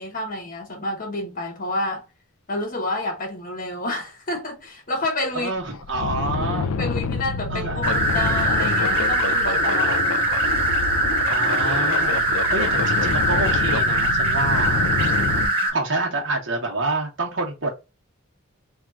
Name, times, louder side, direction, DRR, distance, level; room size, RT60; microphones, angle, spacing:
voice 1, 0.0-2.0 2.5-5.5 5.9-6.1 6.8-10.0 15.1-15.7, left 2 dB, 40° left, 1.2 m, -29 dB
sound 1, 5.0-5.1 5.6-15.5, left 4 dB, 90° left, 0.5 m, -27 dB
voice 2, 5.3-6.7 7.5-7.8 11.3-14.8 15.1-17.7, right 2 dB, 65° right, 1.4 m, -28 dB
sound 2, 7.8-15.7, right 1 dB, 25° right, 1.6 m, -22 dB
3.4 x 2.5 x 4.2 m
head